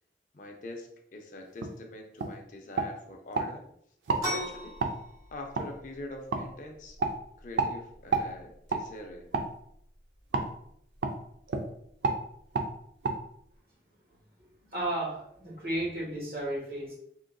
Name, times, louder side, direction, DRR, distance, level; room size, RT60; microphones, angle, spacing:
voice 1, 0.3-3.6 4.2-4.8 5.3-7.0 7.4-9.3, left 2 dB, 45° left, 2 dB, 0.4 m, -44 dB
sound 1, 1.6-1.7 2.2-2.3 2.7-3.5 4.0-4.2 4.8-4.9 5.5-5.7 6.3-6.4 7.0-7.1 7.6-7.7 8.1-8.3 8.7-8.8 9.3-9.5 10.3-10.5 11.0-11.2 11.5-11.7 12.0-12.2 12.5-12.7 13.0-13.1, right 4 dB, 85° right, 0.4 m, -29 dB
sound 2, 4.2-13.6, equal, 20° right, 1.0 m, -44 dB
voice 2, 14.6-16.9, right 1 dB, 55° right, -5 dB, 1.3 m, -33 dB
3.6 x 2.5 x 2.3 m, 0.69 s
head